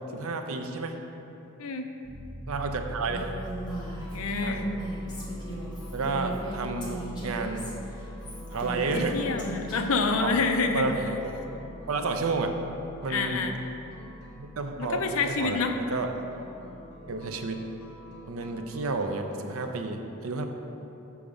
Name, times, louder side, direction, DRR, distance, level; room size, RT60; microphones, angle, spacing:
voice 1, 0.1-1.0 2.5-3.3 4.4-4.6 5.9-7.7 8.5-9.2 10.2-10.4 10.7-11.5 11.9-12.6 13.0-13.5 14.4-16.1 17.1-17.7 18.3-20.4, right 3 dB, 75° right, 5 dB, 0.6 m, -31 dB
voice 2, 1.6-1.9 4.1-4.7 8.9-10.9 13.1-13.5 14.8-15.8, left 4 dB, 75° left, 5 dB, 0.6 m, -27 dB
Piano, 2.0-18.7, equal, 15° right, 1.7 m, -43 dB
Female speech woman speaking, 3.1-10.1, equal, 20° left, 1.1 m, -38 dB
sound 1, 3.6-19.9, left 1 dB, 90° left, 1.3 m, -49 dB
7.1 x 4.8 x 5.1 m, 2.8 s
head